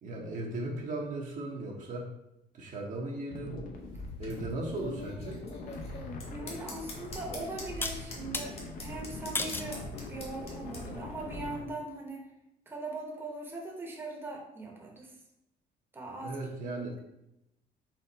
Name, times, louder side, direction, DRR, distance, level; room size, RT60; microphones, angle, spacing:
voice 1, 0.0-2.1 2.5-3.6 4.2-5.4 16.2-16.9, right 2 dB, 50° right, -1 dB, 0.9 m, -37 dB
sound 1, 3.3-11.6, left 2 dB, 55° left, 0.7 m, -42 dB
sound 2, 3.7-10.8, left 2 dB, 35° left, 1.3 m, -44 dB
voice 2, 6.2-8.5 8.8-12.2 12.7-15.1 15.9-16.4 16.7-17.0, right 2 dB, 15° right, -1 dB, 0.9 m, -41 dB
sound 3, 6.4-6.5 7.8-8.5 9.3-9.7 10.4-10.8, left 3 dB, 15° left, 0.3 m, -35 dB
4.3 x 2.5 x 4.0 m, 0.85 s
cardioid pair, 110°, 17 cm